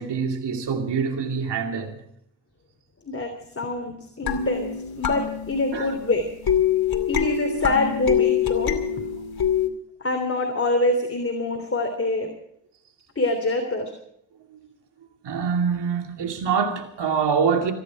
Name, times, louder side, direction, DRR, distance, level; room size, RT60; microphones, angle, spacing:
voice 1, 0.0-2.0 3.9-4.0 5.7-5.9 14.5-14.6 15.2-17.7, right 6 dB, 75° right, 2.5 m, -25 dB
voice 2, 3.5-4.7 5.0-6.3 7.1-8.7 10.0-12.3 13.1-13.9, left 2 dB, 30° left, 3.3 m, -25 dB
sound 1, 4.3-9.7, left 8 dB, 60° left, 2.5 m, -25 dB
26.0 x 10.5 x 4.8 m
supercardioid pair, 45°, 42 cm